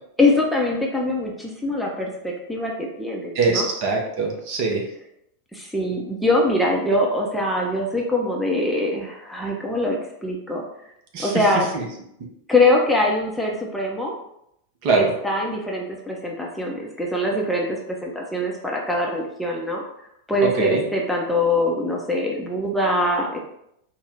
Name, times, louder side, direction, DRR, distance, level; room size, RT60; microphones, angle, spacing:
voice 1, 0.2-3.7 5.5-10.6 11.2-11.7 12.5-14.2 14.9-19.8 20.3-23.4, left 1 dB, ahead, -2 dB, 0.6 m, -23 dB
voice 2, 3.3-4.9 11.1-11.4 11.7-11.8 14.8-15.1 20.5-20.8, right 3 dB, 45° right, 1 dB, 0.8 m, -22 dB
4.5 x 2.1 x 3.3 m, 0.77 s
figure-of-eight pair, 90°, 0 cm